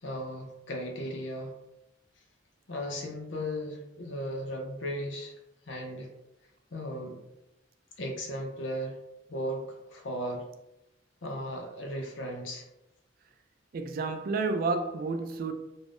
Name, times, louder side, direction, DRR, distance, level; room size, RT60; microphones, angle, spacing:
voice 1, 0.0-1.5 2.7-5.3 5.7-6.1 6.7-7.2 8.0-9.0 9.3-10.4 11.2-12.6, equal, 75° left, 0.6 m, -36 dB
voice 2, 13.7-15.5, right 3 dB, 50° right, 0.3 m, -30 dB
2.5 x 2.2 x 3.4 m
head